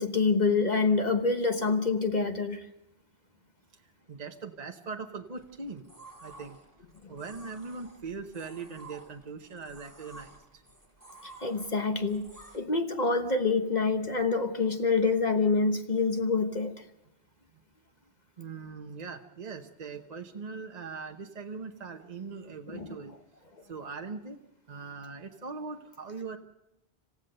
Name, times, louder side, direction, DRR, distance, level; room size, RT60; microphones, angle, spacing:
voice 1, 0.0-2.7 7.0-7.1 11.2-12.3 12.5-16.8 22.7-23.0 23.6-23.7, left 4 dB, 40° left, 1.2 m, -27 dB
voice 2, 4.1-5.8 6.2-6.6 7.1-10.6 18.4-23.1 23.6-24.4 24.7-26.4, right 4 dB, 40° right, 1.0 m, -41 dB
sound 1, 5.4-12.6, right 2 dB, 15° right, 3.2 m, -52 dB
27.0 x 15.5 x 6.6 m
omnidirectional pair, 1.1 m